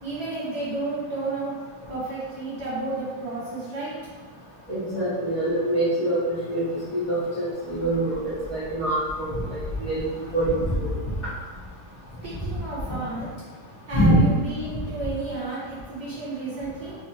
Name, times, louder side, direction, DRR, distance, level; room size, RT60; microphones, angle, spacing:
voice 1, 0.0-1.5 1.9-3.9 12.2-13.3 13.9-17.0, right 2 dB, 45° right, -10 dB, 1.2 m, -32 dB
voice 2, 4.7-6.2 6.5-6.6 6.9-8.2 8.5-10.0 10.3-10.9 13.9-14.2, right 1 dB, 30° left, -14 dB, 1.0 m, -24 dB
4.2 x 2.9 x 2.8 m, 1.5 s
omnidirectional pair, 1.6 m